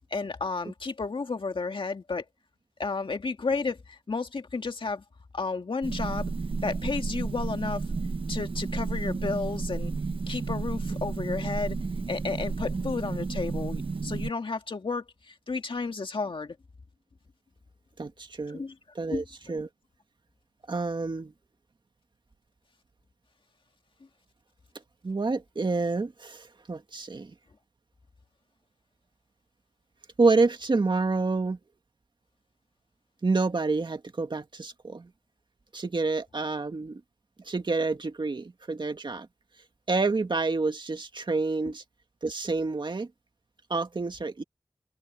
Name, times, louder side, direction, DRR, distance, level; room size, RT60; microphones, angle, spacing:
voice 1, 0.1-2.2 2.8-5.0 5.3-6.3 6.6-7.8 8.3-9.9 10.3-11.8 12.1-16.6 18.5-18.7 19.1-19.2, left 4 dB, 75° left, 2.0 m, -32 dB
sound 1, 5.8-14.3, right 4 dB, 85° right, 1.3 m, -32 dB
voice 2, 18.0-18.6 19.0-19.7 20.7-21.3 25.0-27.3 30.2-31.6 33.2-35.1 35.7-37.0 37.5-39.3 39.9-41.8 42.2-43.1 43.7-44.4, right 3 dB, 60° right, 1.9 m, -28 dB
wide cardioid pair, 65°, 9 cm